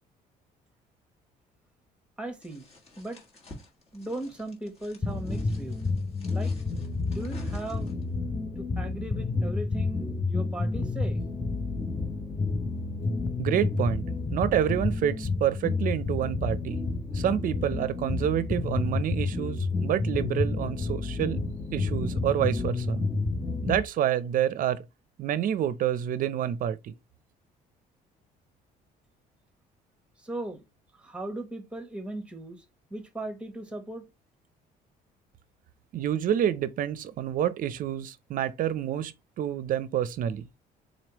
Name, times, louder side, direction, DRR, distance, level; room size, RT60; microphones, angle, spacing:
voice 1, 2.2-2.6 3.0-3.2 3.9-5.8 6.3-6.5 7.1-7.9 8.8-11.2 30.2-30.6 31.0-32.6 32.9-34.1, right 1 dB, 5° right, 1.1 m, -37 dB
sound 1, 2.4-8.1, left 2 dB, 35° left, 1.4 m, -52 dB
sound 2, 5.0-23.8, left 3 dB, 15° left, 0.6 m, -30 dB
voice 2, 13.4-14.0 14.3-16.8 17.1-21.4 21.7-23.0 23.6-24.8 25.2-26.9 35.9-40.4, right 10 dB, 55° right, 0.5 m, -28 dB
4.0 x 3.2 x 3.0 m
cardioid pair, 110°, 17 cm